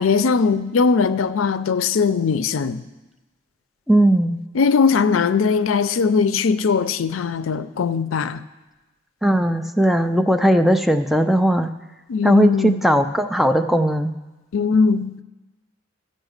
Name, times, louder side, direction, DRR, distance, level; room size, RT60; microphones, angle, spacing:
voice 1, 0.0-2.8 4.5-8.4 12.1-12.8 14.5-15.2, left 5 dB, 90° left, 0.4 m, -20 dB
voice 2, 3.9-4.4 9.2-11.7 12.2-14.1, right 1 dB, ahead, 0.3 m, -18 dB
14.0 x 5.5 x 6.5 m
head